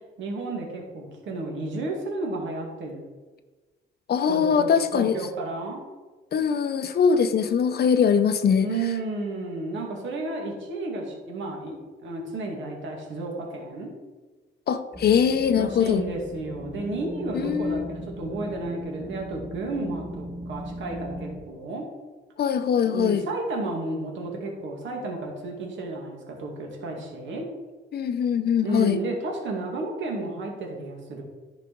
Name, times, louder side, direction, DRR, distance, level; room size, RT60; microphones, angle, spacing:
voice 1, 0.2-3.0 4.3-5.8 8.6-13.9 15.5-21.8 22.9-27.4 28.6-31.2, right 2 dB, 70° right, 0 dB, 2.2 m, -32 dB
voice 2, 4.1-5.2 6.3-8.7 14.7-16.0 17.3-17.9 22.4-23.2 27.9-29.0, left 7 dB, 55° left, 10 dB, 0.7 m, -22 dB
sound 1, 14.9-21.4, right 1 dB, 5° left, 1.3 m, -38 dB
10.0 x 4.9 x 4.6 m, 1.3 s
cardioid pair, 90°, 20 cm